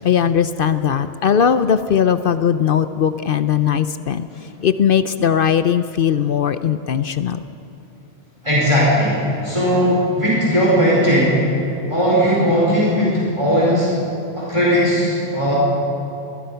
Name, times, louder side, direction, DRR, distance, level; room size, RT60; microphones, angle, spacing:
voice 1, 0.0-4.3 4.6-7.4, left 8 dB, 60° left, 12 dB, 0.8 m, -18 dB
voice 2, 8.4-11.4 11.9-13.9 14.3-15.6, equal, 30° right, -6 dB, 5.0 m, -17 dB
23.0 x 20.5 x 5.7 m, 2.9 s
omnidirectional pair, 1.1 m